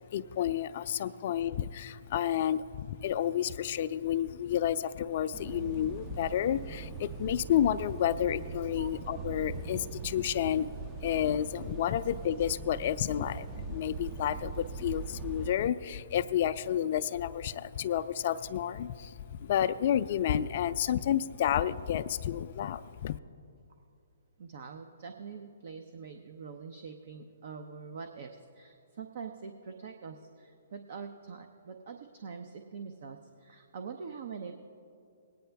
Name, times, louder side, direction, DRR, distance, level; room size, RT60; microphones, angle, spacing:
voice 1, 0.1-10.7 11.0-23.2, left 10 dB, 50° left, 14 dB, 0.4 m, -30 dB
sound 1, 5.3-15.5, right 5 dB, 20° right, 0.5 m, -41 dB
voice 2, 24.4-34.5, right 5 dB, 55° right, 6 dB, 0.7 m, -44 dB
19.5 x 9.2 x 3.4 m, 2.4 s
hypercardioid pair, 135°, 0 cm